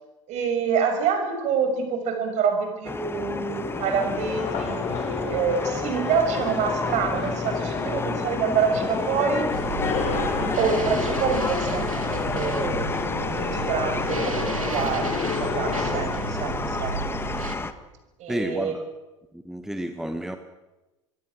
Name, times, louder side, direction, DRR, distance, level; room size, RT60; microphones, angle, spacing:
voice 1, 0.3-9.6 10.3-12.9 13.4-17.2 18.2-18.8, right 6 dB, 45° right, 6 dB, 6.4 m, -27 dB
sound 1, 2.8-17.7, left 3 dB, 15° left, 1.5 m, -30 dB
sound 2, 3.4-16.1, left 4 dB, 45° left, 7.4 m, -32 dB
sound 3, 9.5-17.5, right 5 dB, 85° right, 2.4 m, -34 dB
voice 2, 18.3-18.8 19.3-20.4, right 1 dB, ahead, 8 dB, 1.4 m, -30 dB
25.0 x 23.0 x 6.4 m, 1.1 s
figure-of-eight pair, 80°, 17 cm